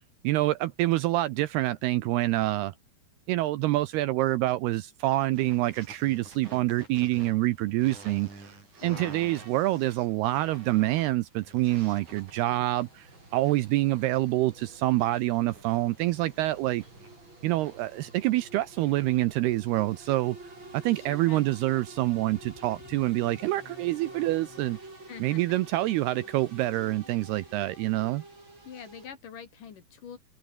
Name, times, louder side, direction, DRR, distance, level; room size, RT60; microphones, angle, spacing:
voice 1, 0.2-2.7 3.3-8.6 8.8-16.8 17.4-24.8 25.2-28.2, right 17 dB, 80° right, 2.5 m, -26 dB
sound 1, 5.3-19.3, right 3 dB, 40° right, 9.3 m, -51 dB
voice 2, 8.8-9.2 20.9-21.5 25.1-25.6 28.6-30.2, left 7 dB, 50° left, 3.6 m, -44 dB
sound 2, 11.7-29.1, right 2 dB, 25° right, 8.3 m, -49 dB
sound 3, 21.9-24.8, left 6 dB, 80° left, 7.1 m, -53 dB
omnidirectional pair, 5.2 m